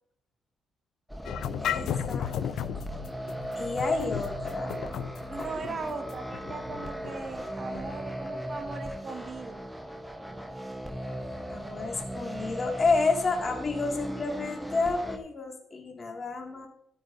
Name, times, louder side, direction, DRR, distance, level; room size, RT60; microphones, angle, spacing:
sound 1, 1.1-15.2, right 1 dB, ahead, 1.1 m, -38 dB
sound 2, 1.3-8.0, left 9 dB, 75° left, 0.5 m, -35 dB
voice 1, 1.6-2.9 3.6-4.8 5.7-5.8 11.5-16.7, left 3 dB, 35° left, 2 dB, 2.4 m, -30 dB
voice 2, 5.3-9.6, right 4 dB, 40° right, 5 dB, 1.7 m, -38 dB
12.5 x 9.2 x 2.8 m, 0.75 s
cardioid pair, 90°, 0 cm